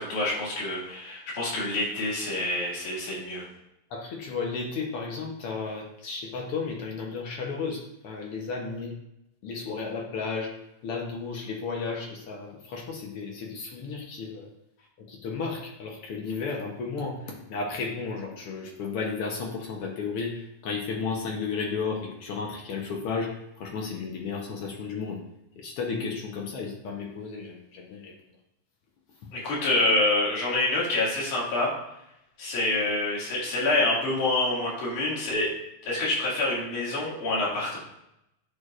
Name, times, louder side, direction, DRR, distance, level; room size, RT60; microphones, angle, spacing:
voice 1, 0.0-3.5 29.3-31.7 32.4-35.5 35.8-37.8, left 2 dB, 65° left, -6 dB, 3.7 m, -27 dB
voice 2, 3.9-8.9 9.4-10.5 10.8-14.5 15.0-25.2 25.6-28.1 29.2-29.3, left 4 dB, 85° left, 0 dB, 1.2 m, -33 dB
10.5 x 6.8 x 2.5 m, 0.83 s
omnidirectional pair, 3.9 m